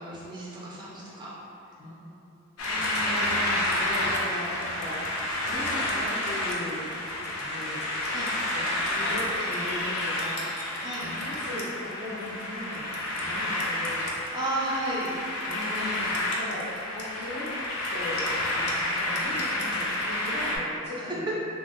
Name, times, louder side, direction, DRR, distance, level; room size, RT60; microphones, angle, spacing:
voice 1, 0.0-1.3 2.6-3.5 8.1-8.3 10.8-11.0 14.3-15.1, right 1 dB, 20° right, -7 dB, 0.5 m, -34 dB
voice 2, 1.8-5.0 5.5-6.8 7.4-7.8 8.5-10.5 11.0-12.8 13.1-14.4 15.5-17.5 17.9-21.4, left 1 dB, 30° left, -11 dB, 0.8 m, -38 dB
sound 1, 2.6-20.6, left 1 dB, 90° left, 0.5 m, -30 dB
2.5 x 2.1 x 3.6 m, 2.7 s
head